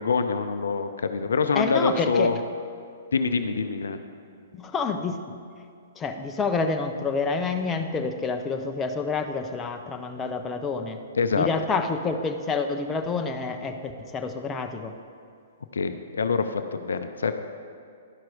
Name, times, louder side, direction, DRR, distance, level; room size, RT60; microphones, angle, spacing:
voice 1, 0.0-2.4 3.1-4.0 11.1-11.5 15.7-17.3, left 4 dB, 75° left, 9 dB, 0.5 m, -25 dB
voice 2, 1.6-2.3 4.5-5.4 6.0-11.0 11.4-14.9, left 4 dB, 20° left, 5 dB, 0.7 m, -28 dB
11.5 x 5.9 x 5.0 m, 2.4 s
hypercardioid pair, 120°, 0 cm